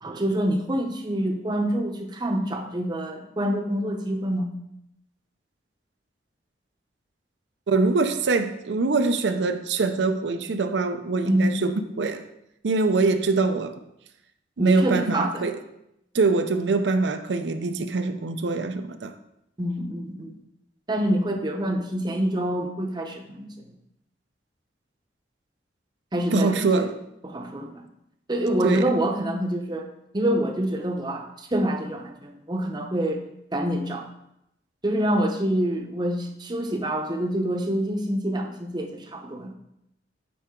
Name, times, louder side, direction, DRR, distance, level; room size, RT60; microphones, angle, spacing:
voice 1, 0.0-4.5 11.3-11.5 14.6-15.4 19.6-20.3 20.9-23.5 26.1-26.9 27.2-27.8 28.3-29.9 30.1-33.2 33.5-34.1 34.8-39.5, right 1 dB, 25° right, 0.8 m, -26 dB
voice 2, 7.7-12.2 12.6-13.7 14.6-15.6 16.1-19.1 26.3-27.0 28.6-29.0, right 3 dB, 75° right, 0.5 m, -24 dB
8.5 x 4.8 x 3.7 m
head